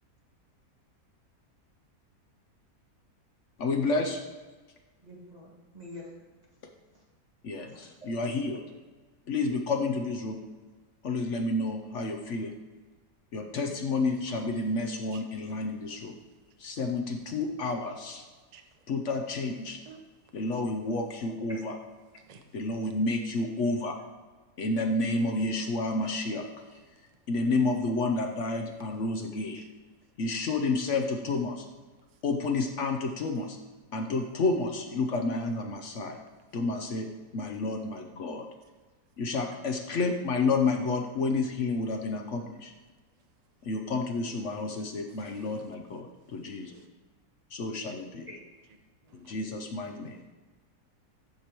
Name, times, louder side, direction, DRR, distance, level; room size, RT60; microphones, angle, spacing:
voice 1, 3.6-4.4 7.4-8.6 9.3-10.4 11.0-12.5 13.3-16.1 16.6-18.2 18.9-19.8 20.3-21.7 22.5-24.0 24.6-26.4 26.7-26.8 27.3-29.6 30.2-31.7 32.2-33.6 33.9-36.2 36.5-37.1 37.3-38.5 39.2-42.7 43.6-46.8 47.5-48.3 49.1-50.2, left 3 dB, 60° left, 4 dB, 0.8 m, -30 dB
voice 2, 5.0-6.2 6.5-6.6 6.9-7.0 7.7-8.1 13.5-13.8 48.3-48.4 49.0-49.1, left 1 dB, 25° right, -5 dB, 1.7 m, -48 dB
voice 3, 22.2-22.5 29.6-29.7 45.2-45.6 46.7-46.8 49.1-49.3, right 6 dB, 85° right, 6 dB, 0.3 m, -53 dB
14.0 x 4.8 x 3.0 m, 1.3 s
omnidirectional pair, 1.7 m